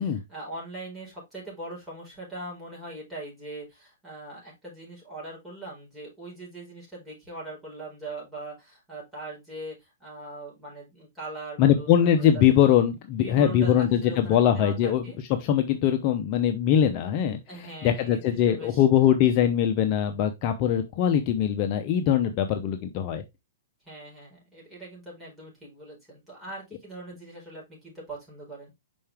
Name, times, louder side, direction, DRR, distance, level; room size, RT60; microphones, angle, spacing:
voice 1, 0.0-15.2 17.5-18.8 23.8-28.7, right 2 dB, 5° right, 4.6 m, -41 dB
voice 2, 11.6-15.1 15.4-17.4 17.8-23.2, left 10 dB, 40° left, 0.7 m, -22 dB
5.7 x 5.3 x 3.4 m
hypercardioid pair, 140°, 0 cm